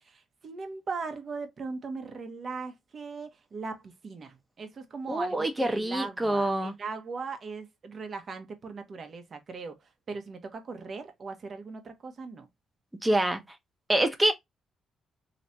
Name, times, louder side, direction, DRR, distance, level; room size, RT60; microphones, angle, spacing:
voice 1, 0.0-9.8 10.1-12.5, right 4 dB, 45° right, 1.1 m, -39 dB
voice 2, 5.1-6.7 13.0-13.4 13.9-14.3, right 1 dB, 10° right, 0.9 m, -26 dB
3.2 x 3.1 x 2.7 m
cardioid pair, 90°, 0 cm